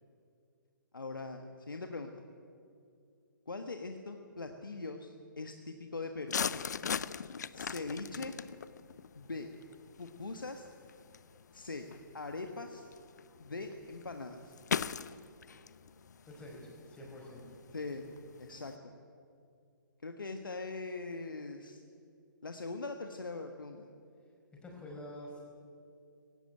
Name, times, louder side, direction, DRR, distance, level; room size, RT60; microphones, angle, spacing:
voice 1, 0.9-2.2 3.5-6.4 7.5-8.3 9.2-9.5 10.0-10.7 11.5-11.9 12.1-12.9 13.4-14.5 17.7-18.0 18.4-18.9 20.0-21.8 22.4-23.9, left 3 dB, 70° left, 5 dB, 1.5 m, -41 dB
sound 1, 6.3-18.7, left 7 dB, 55° left, 0.6 m, -41 dB
voice 2, 16.3-17.4 24.6-25.4, left 1 dB, 10° left, -1 dB, 4.9 m, -47 dB
18.5 x 17.0 x 9.1 m, 2.4 s
figure-of-eight pair, 130°, 11 cm